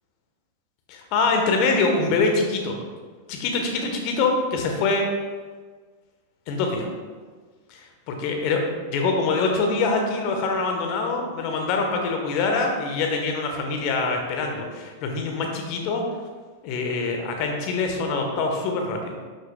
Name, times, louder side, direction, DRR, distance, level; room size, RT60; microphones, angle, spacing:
voice 1, 0.9-2.8 3.3-5.0 6.5-6.9 7.7-16.0 16.6-19.2, left 3 dB, 45° left, 3 dB, 1.4 m, -24 dB
11.5 x 6.5 x 2.4 m, 1.5 s
figure-of-eight pair, 90°, 0 cm